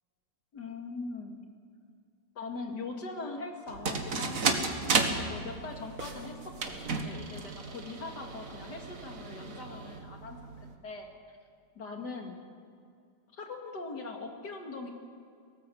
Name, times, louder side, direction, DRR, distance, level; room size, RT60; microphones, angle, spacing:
voice 1, 0.5-1.4 2.4-4.4 5.2-11.4 11.7-12.4 13.3-14.9, left 3 dB, 65° left, 2 dB, 2.8 m, -41 dB
sound 1, 3.7-10.7, right 4 dB, 50° right, 1.9 m, -34 dB
19.0 x 18.5 x 7.8 m, 2.4 s
omnidirectional pair, 1.9 m